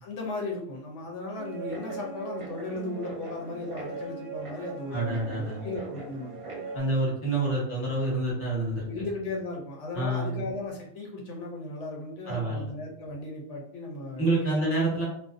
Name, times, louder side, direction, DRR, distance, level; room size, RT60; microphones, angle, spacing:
voice 1, 0.0-6.3 7.4-7.5 8.9-14.6, left 2 dB, 80° left, -1 dB, 0.9 m, -36 dB
Guitar, 1.4-6.8, right 4 dB, 40° right, 0.4 m, -39 dB
voice 2, 4.9-5.6 6.7-9.0 9.9-10.4 12.3-12.6 14.2-15.0, right 2 dB, 10° left, -5 dB, 0.9 m, -28 dB
2.5 x 2.1 x 2.4 m, 0.70 s
omnidirectional pair, 1.2 m